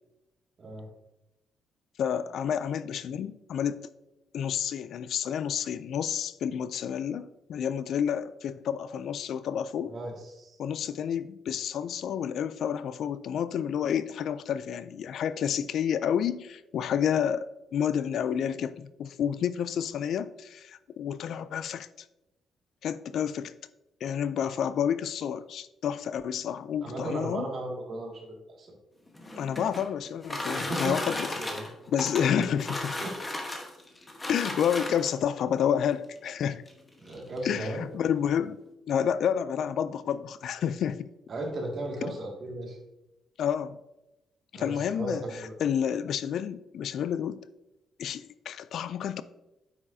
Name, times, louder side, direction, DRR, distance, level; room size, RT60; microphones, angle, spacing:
voice 1, 2.0-3.8 4.3-9.9 10.6-21.9 22.8-23.5 24.0-27.5 29.3-31.4 31.9-33.0 34.3-36.6 37.4-38.6 38.9-41.1 42.0-42.1 43.4-43.8 44.5-45.2 45.6-47.4 48.0-49.2, left 8 dB, 65° left, 15 dB, 0.3 m, -29 dB
voice 2, 9.9-10.6 26.8-28.7 30.6-31.0 31.4-31.7 32.3-32.4 33.0-33.1 37.0-37.9 41.3-42.8 44.5-45.5, right 1 dB, 40° right, -1 dB, 2.0 m, -36 dB
sound 1, 29.1-35.3 36.2-36.3 36.7-36.8 37.1-37.4, left 1 dB, 15° left, 1.1 m, -35 dB
8.7 x 6.2 x 2.7 m, 0.95 s
cardioid pair, 130°, 0 cm